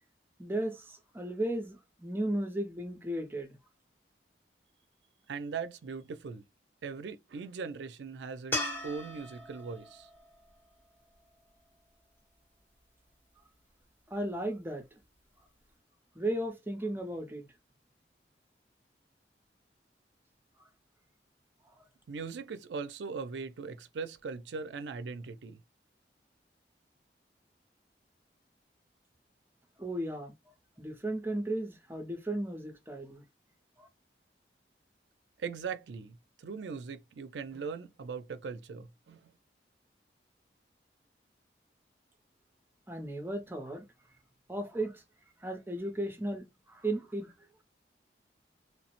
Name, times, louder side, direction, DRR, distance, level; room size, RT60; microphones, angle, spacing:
voice 1, 0.4-3.6 14.1-14.8 16.2-17.5 21.8-21.9 29.8-30.3 30.8-33.2 33.8-33.9 42.9-43.8 44.5-45.0 45.4-47.3, right 1 dB, 10° right, 0.5 m, -35 dB
voice 2, 5.3-6.4 6.8-10.1 22.1-25.6 35.4-39.3, right 5 dB, 85° right, 0.4 m, -40 dB
sound 1, 8.5-11.8 15.0-15.1, left 1 dB, 10° left, 0.8 m, -39 dB
3.1 x 2.0 x 2.9 m
head